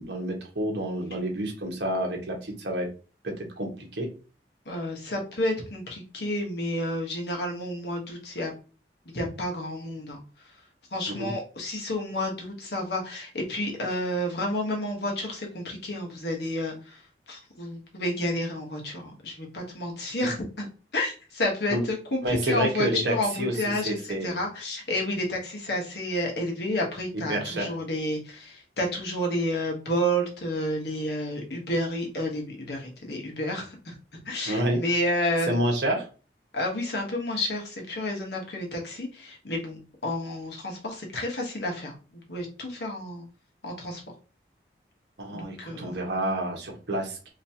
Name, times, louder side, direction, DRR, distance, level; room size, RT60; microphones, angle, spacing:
voice 1, 0.0-2.9 3.2-4.1 11.1-11.3 20.2-20.3 21.7-21.8 22.2-23.5 23.8-24.3 27.3-27.7 34.4-34.8 35.5-36.1 45.2-47.3, right 1 dB, 75° right, 1 dB, 1.2 m, -29 dB
voice 2, 4.7-8.5 9.1-10.2 10.9-17.0 17.3-23.9 24.2-33.9 34.2-35.6 36.5-42.0 42.3-43.2 43.6-44.0 45.3-45.9, left 1 dB, 65° left, 0 dB, 1.1 m, -30 dB
3.2 x 3.0 x 2.8 m, 0.35 s
head